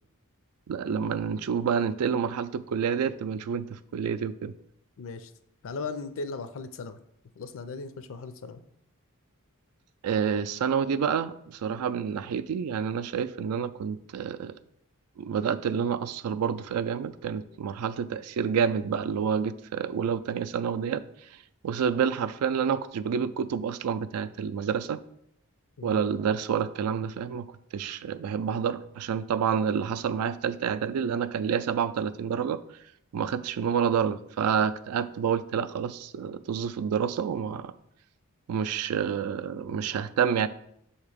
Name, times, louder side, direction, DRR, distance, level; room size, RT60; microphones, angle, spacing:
voice 1, 0.7-4.5 10.0-14.5 15.2-21.0 21.6-25.0 25.8-27.5 27.7-32.6 33.1-37.7 38.5-40.5, right 7 dB, 80° right, 13 dB, 0.3 m, -28 dB
voice 2, 5.0-5.3 5.6-7.0 7.4-8.6 25.8-26.0, left 4 dB, 60° left, 11 dB, 0.5 m, -37 dB
6.5 x 2.9 x 4.9 m, 0.74 s
head